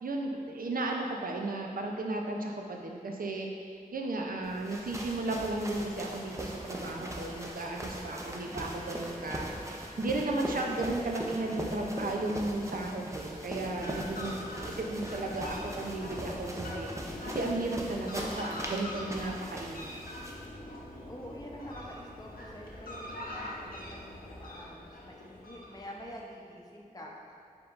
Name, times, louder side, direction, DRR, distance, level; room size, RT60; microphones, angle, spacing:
voice 1, 0.0-19.9, right 2 dB, 75° right, 1 dB, 0.5 m, -34 dB
sound 1, 4.3-13.8, equal, 90° right, 1.1 m, -52 dB
sound 2, 4.4-20.5, right 1 dB, 20° right, 0.5 m, -40 dB
Fowl, 13.1-26.1, left 1 dB, 75° left, 0.7 m, -43 dB
voice 2, 13.9-14.8 21.1-27.1, left 1 dB, 25° left, -2 dB, 0.6 m, -47 dB
4.8 x 3.7 x 2.4 m, 2.3 s
wide cardioid pair, 45°, 15 cm